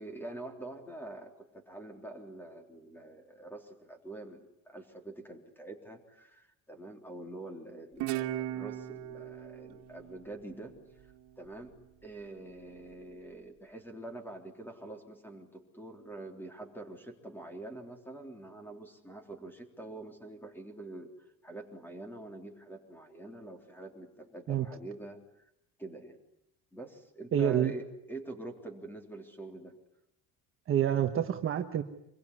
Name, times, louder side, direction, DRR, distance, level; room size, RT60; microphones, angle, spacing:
voice 1, 0.0-10.8 11.4-11.7 12.0-25.2 25.8-26.2 26.7-29.8, right 2 dB, 5° left, 5 dB, 3.6 m, -45 dB
Guitar, 8.0-11.2, right 13 dB, 80° right, 1.9 m, -38 dB
voice 2, 27.3-27.7 30.7-31.8, right 10 dB, 30° right, 5 dB, 1.2 m, -27 dB
26.0 x 22.5 x 9.8 m, 0.80 s
cardioid pair, 170°, 39 cm